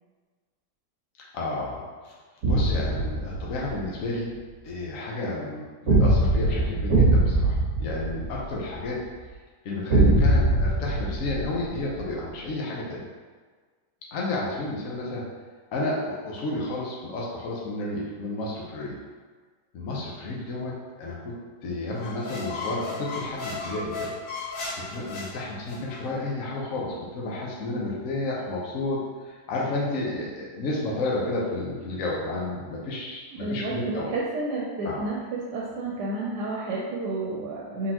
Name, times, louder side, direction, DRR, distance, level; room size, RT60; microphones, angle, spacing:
voice 1, 1.3-2.1 2.5-4.3 4.6-9.0 9.6-13.0 14.1-15.2 15.7-19.0 19.7-21.4 21.6-24.1 24.7-29.0 29.5-34.1 34.8-35.0, left 2 dB, 60° left, -4 dB, 1.2 m, -31 dB
sound 1, 2.4-3.8 5.9-8.8 9.9-12.1, right 2 dB, 60° right, 1.6 m, -22 dB
sound 2, 21.9-26.0, left 3 dB, 75° left, 1.5 m, -35 dB
voice 2, 33.3-37.9, right 2 dB, 90° right, -4 dB, 1.3 m, -31 dB
4.2 x 3.8 x 2.9 m, 1.5 s
omnidirectional pair, 1.8 m